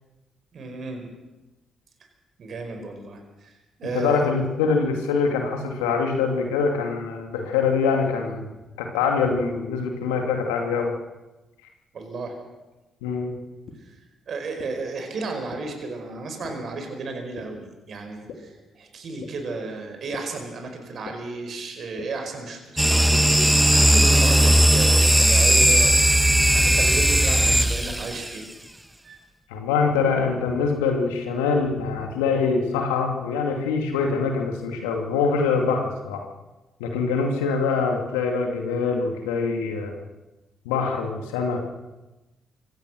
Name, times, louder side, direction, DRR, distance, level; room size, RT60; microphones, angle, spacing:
voice 1, 0.5-1.1 2.4-3.5 3.8-4.2 11.9-12.4 13.8-14.0 14.3-26.0 26.5-28.4 29.0-29.2, right 3 dB, 55° right, 4 dB, 4.9 m, -33 dB
voice 2, 3.9-10.9 13.0-13.3 29.5-36.2 36.8-39.9 40.6-41.7, left 5 dB, 85° left, 3 dB, 2.4 m, -24 dB
sound 1, 13.7-13.8 14.6-14.7 15.5-15.6 16.4-16.5 17.4-17.5 18.3-18.4 19.2-19.3 20.1-20.2 21.0-21.1 22.0-22.1, left 8 dB, 65° left, 3.3 m, -38 dB
sound 2, 22.8-28.3, right 1 dB, 10° right, 1.4 m, -17 dB
24.0 x 16.5 x 6.4 m, 1.1 s
hypercardioid pair, 45°, 0 cm